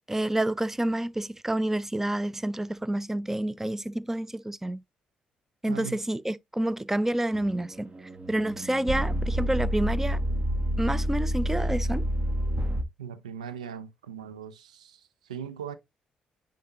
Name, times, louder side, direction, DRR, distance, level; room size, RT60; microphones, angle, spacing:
voice 1, 0.1-4.8 5.6-10.2 10.8-12.1, right 1 dB, 10° right, 0.5 m, -29 dB
voice 2, 5.7-6.0 13.0-15.8, right 8 dB, 85° right, 0.7 m, -40 dB
sound 1, 7.3-12.8, equal, 30° right, 1.2 m, -28 dB
10.0 x 3.9 x 2.9 m
figure-of-eight pair, 45°, 4 cm